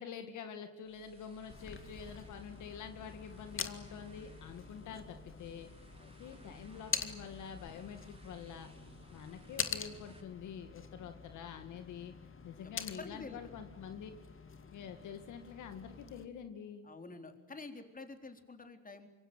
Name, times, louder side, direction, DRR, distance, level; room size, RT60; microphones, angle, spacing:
voice 1, 0.0-5.7 6.2-8.7 9.1-12.2 12.4-14.1 14.7-16.9, left 7 dB, 80° left, 7 dB, 2.2 m, -47 dB
sound 1, 0.8-10.2, right 3 dB, 15° right, 5.8 m, -59 dB
sound 2, 1.5-16.3, left 6 dB, 45° left, 2.1 m, -45 dB
voice 2, 6.0-6.4 12.6-13.6 16.8-19.1, left 3 dB, 30° left, 6 dB, 3.9 m, -49 dB
25.5 x 23.5 x 9.2 m, 1.1 s
cardioid pair, 90°, 30 cm